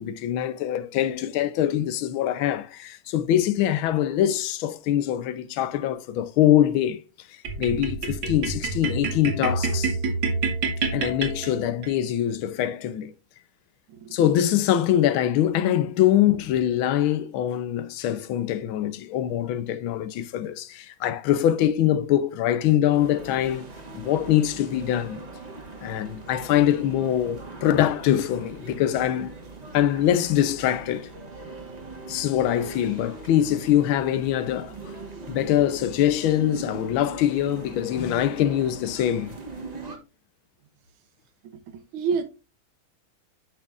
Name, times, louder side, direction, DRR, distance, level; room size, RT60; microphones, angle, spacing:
voice 1, 0.0-7.0 7.3-10.0 10.9-13.1 14.1-23.6 23.9-25.2 25.8-29.3 29.7-31.1 32.1-34.9 35.3-39.3, left 11 dB, 80° left, 1.5 m, -23 dB
sound 1, 7.4-11.9, right 4 dB, 70° right, 2.0 m, -28 dB
sound 2, 22.9-40.0, right 3 dB, 25° right, 1.0 m, -40 dB
voice 2, 41.4-42.2, right 5 dB, 85° right, 1.9 m, -29 dB
8.4 x 6.0 x 2.4 m
omnidirectional pair, 2.3 m